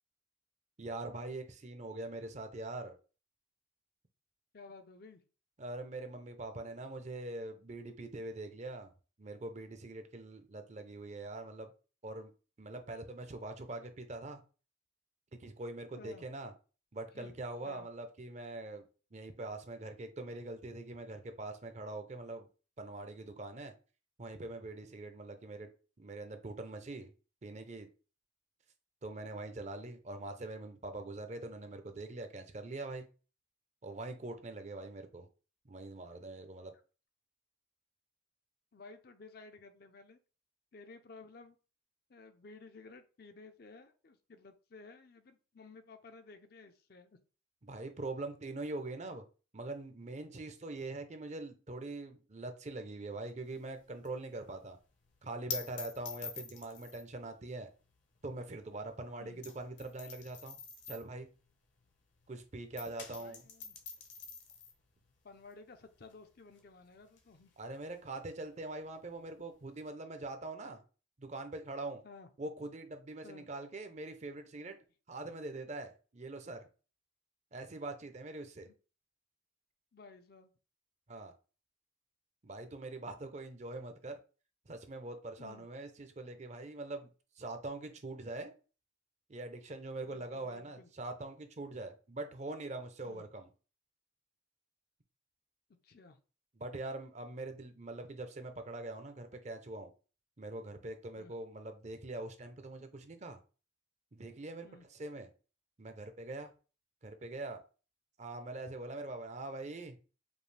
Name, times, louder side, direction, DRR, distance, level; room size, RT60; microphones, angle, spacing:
voice 1, 0.8-3.0 5.6-8.9 9.2-11.7 12.0-12.3 12.6-14.4 15.4-16.5 16.9-18.8 19.1-22.5 22.8-23.7 24.2-25.7 26.0-27.1 27.4-27.9 29.0-33.1 33.8-35.3 35.6-36.7 47.6-49.2 49.5-54.8 55.2-57.7 58.2-60.6 60.9-61.3 62.3-63.4 67.6-70.8 71.2-72.0 72.4-74.8 75.1-76.6 77.5-78.7 81.1-81.3 82.4-84.2 84.7-87.1 87.4-88.5 89.3-93.5 96.6-99.9 100.4-103.4 104.1-105.3 105.8-106.5 107.0-107.6 108.2-110.0, right 2 dB, 35° right, 0.6 m, -43 dB
voice 2, 4.5-5.2 16.0-16.3 17.1-17.3 17.6-17.9 38.7-40.2 40.7-41.6 42.1-47.2 59.2-59.4 63.1-63.8 65.2-67.5 72.0-72.3 73.2-73.5 78.6-78.7 79.9-80.5 85.4-85.7 90.0-90.9 93.0-93.2 95.8-96.2 101.2-101.3 104.6-104.8, left 3 dB, 50° left, 0.5 m, -54 dB
sound 1, 53.5-62.3 62.6-69.8, left 6 dB, 65° left, 0.9 m, -48 dB
5.2 x 2.4 x 3.3 m
head